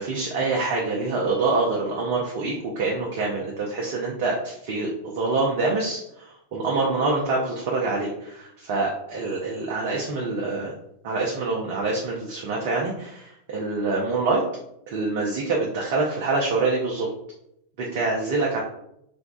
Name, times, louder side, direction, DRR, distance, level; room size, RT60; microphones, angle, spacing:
voice 1, 0.0-10.7 11.0-14.4 14.9-17.1 17.8-18.6, right 3 dB, 50° right, -2 dB, 0.7 m, -26 dB
3.4 x 2.3 x 3.9 m, 0.78 s
figure-of-eight pair, 90°, 0 cm